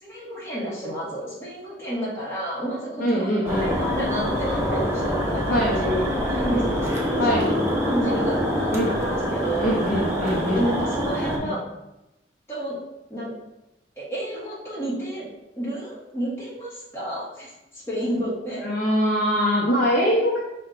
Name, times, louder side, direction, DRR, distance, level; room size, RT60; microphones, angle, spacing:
voice 1, 0.0-6.6 7.2-7.6 7.8-9.7 10.5-11.6 12.5-12.7 13.1-13.3 14.0-15.2 15.6-18.6, equal, 15° left, -7 dB, 1.2 m, -30 dB
voice 2, 3.0-3.7 5.5-5.7 7.2-7.4 8.7-8.9 9.6-10.7 11.4-11.5 18.6-20.4, equal, 45° left, -4 dB, 0.6 m, -22 dB
sound 1, 3.4-11.4, equal, 15° right, 0.6 m, -25 dB
5.4 x 2.2 x 3.7 m, 0.93 s
head